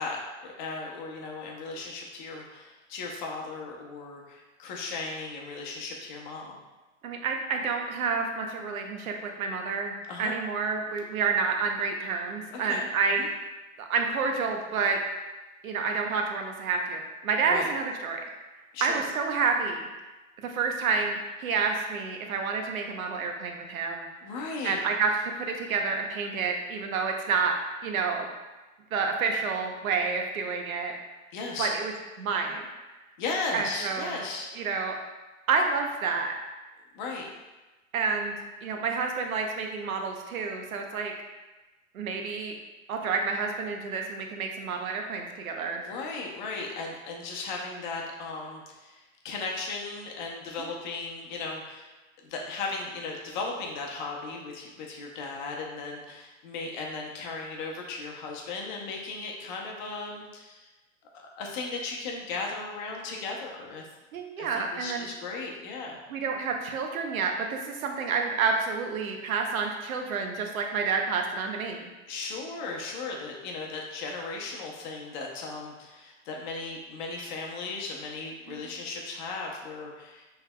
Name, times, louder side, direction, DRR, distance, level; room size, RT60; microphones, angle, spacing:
voice 1, 0.0-6.6 10.1-10.3 12.5-12.9 13.2-13.3 17.5-17.7 18.7-19.0 24.2-24.8 31.3-31.7 33.2-34.5 36.9-37.3 45.7-51.9 52.2-60.7 61.4-63.8 64.4-66.0 72.1-80.4, left 3 dB, 35° left, 0 dB, 0.7 m, -36 dB
voice 2, 7.0-13.2 13.8-15.0 15.6-18.2 18.8-19.9 20.4-24.1 24.6-27.6 27.8-28.3 28.9-30.9 31.6-31.9 32.2-32.6 33.5-34.2 34.5-35.0 35.5-36.3 37.9-41.1 41.9-42.5 42.9-45.8 50.6-50.7 64.1-65.1 66.1-71.9 78.5-78.6, right 5 dB, 85° right, 3 dB, 0.9 m, -29 dB
6.3 x 3.4 x 2.3 m, 1.1 s
supercardioid pair, 160°, 41 cm